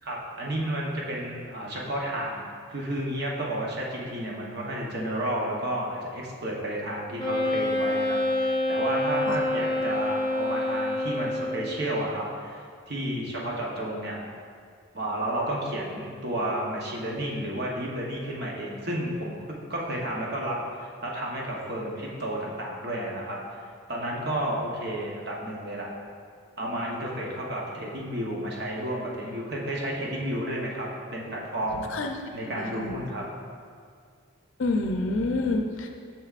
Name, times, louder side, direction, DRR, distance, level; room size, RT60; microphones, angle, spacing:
voice 1, 0.0-2.4 2.7-14.2 14.9-23.4 23.9-25.9 26.6-31.9 32.3-33.2, right 1 dB, 50° right, -3 dB, 0.9 m, -31 dB
Wind instrument woodwind instrument, 7.2-11.8, left 2 dB, 25° left, 0.6 m, -27 dB
voice 2, 32.5-33.0 34.6-35.9, left 2 dB, 70° left, 3 dB, 0.5 m, -28 dB
6.8 x 6.0 x 2.4 m, 2.2 s
head